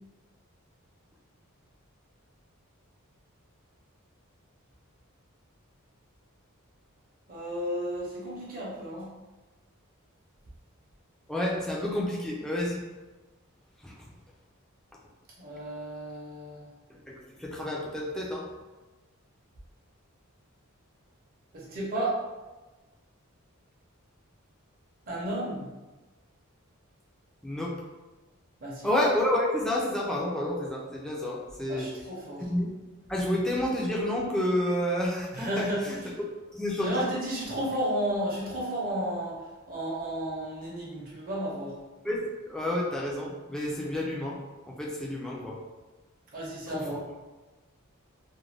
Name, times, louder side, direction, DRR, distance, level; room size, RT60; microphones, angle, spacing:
voice 1, 7.3-9.1 15.4-16.7 21.5-22.2 25.1-25.7 28.6-28.9 31.7-32.4 35.3-35.8 36.8-39.4 39.7-41.7 46.3-47.0, right 1 dB, 40° right, -6 dB, 0.7 m, -32 dB
voice 2, 11.3-12.8 13.8-14.0 16.9-18.5 27.4-27.8 28.8-31.9 32.4-32.7 33.1-36.0 36.5-37.1 42.0-44.4 44.7-45.6 46.7-47.0, left 1 dB, 5° left, -4 dB, 0.4 m, -30 dB
2.5 x 2.2 x 3.2 m, 1.2 s
head